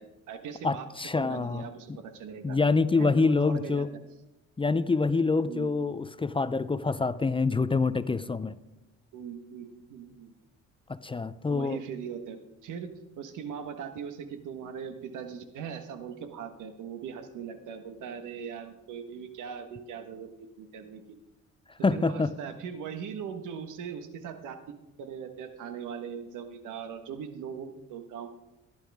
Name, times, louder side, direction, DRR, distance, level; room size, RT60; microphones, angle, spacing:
voice 1, 0.0-0.9 1.1-2.6 3.0-3.8 5.5-5.7 9.1-10.3 11.5-21.2 21.9-28.3, right 7 dB, 85° right, 8 dB, 1.4 m, -40 dB
voice 2, 0.6-2.0 2.4-3.9 4.6-8.6 10.9-11.8 21.8-22.3, left 4 dB, 20° left, 15 dB, 0.5 m, -26 dB
15.0 x 11.0 x 3.5 m, 1.0 s
cardioid pair, 90°, 30 cm